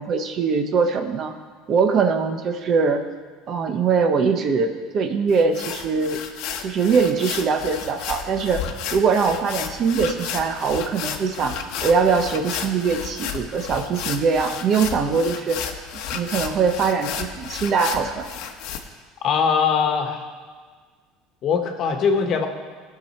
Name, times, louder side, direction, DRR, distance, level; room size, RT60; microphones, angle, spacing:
voice 1, 0.0-1.3 1.7-3.0 3.5-6.2 6.6-8.6 8.9-15.6 16.1-18.3, right 5 dB, 40° right, 7 dB, 0.9 m, -22 dB
sound 1, 5.3-18.8, left 8 dB, 70° left, 1.0 m, -32 dB
voice 2, 19.2-20.2 21.4-22.5, left 6 dB, 45° left, 5 dB, 1.3 m, -21 dB
17.5 x 5.9 x 4.3 m, 1.5 s
cardioid pair, 135°, 0 cm